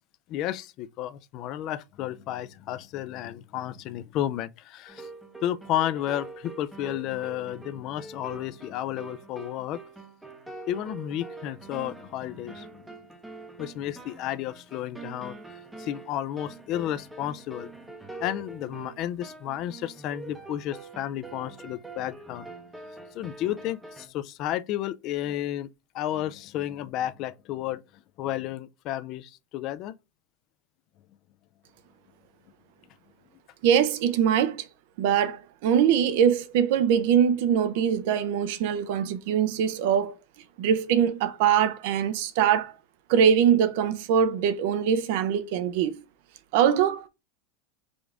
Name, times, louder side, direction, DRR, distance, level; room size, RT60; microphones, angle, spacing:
voice 1, 0.3-5.1 5.4-9.8 10.7-12.9 13.6-15.4 15.8-17.7 18.2-22.5 23.1-25.7 25.9-27.8 28.2-29.9, left 12 dB, 40° left, 0.3 m, -32 dB
sound 1, 4.9-24.1, right 3 dB, 5° right, 0.7 m, -44 dB
voice 2, 33.6-34.6 35.0-40.1 40.6-42.7 43.1-46.0 46.5-47.1, right 8 dB, 60° right, 0.6 m, -23 dB
5.1 x 2.5 x 3.3 m
supercardioid pair, 155°, 0 cm